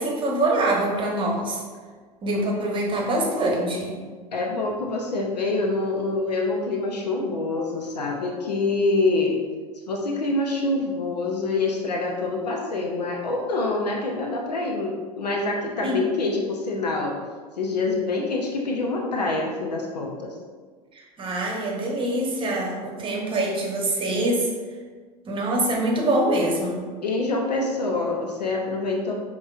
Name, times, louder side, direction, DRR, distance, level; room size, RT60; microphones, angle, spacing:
voice 1, 0.0-1.6 2.2-4.0 15.8-16.0 20.9-24.5 25.3-26.9, right 1 dB, 25° right, -1 dB, 0.9 m, -24 dB
voice 2, 4.3-9.4 9.9-17.2 17.6-20.3 27.0-29.1, left 3 dB, 80° left, 1 dB, 0.5 m, -26 dB
5.3 x 2.9 x 2.4 m, 1.5 s
figure-of-eight pair, 80°, 21 cm